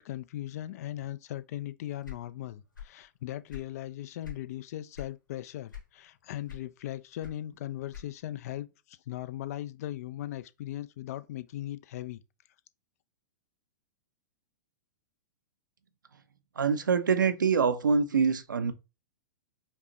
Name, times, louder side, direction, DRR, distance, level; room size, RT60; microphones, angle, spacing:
voice 1, 0.0-12.2, left 13 dB, 50° left, 0.4 m, -38 dB
sound 1, 2.0-3.0 3.3-4.5 4.9-5.2 5.7-6.1 6.5-8.4, left 9 dB, 80° left, 1.3 m, -44 dB
voice 2, 16.6-18.7, right 5 dB, 80° right, 0.5 m, -25 dB
5.1 x 2.1 x 2.8 m
figure-of-eight pair, 105°, 10 cm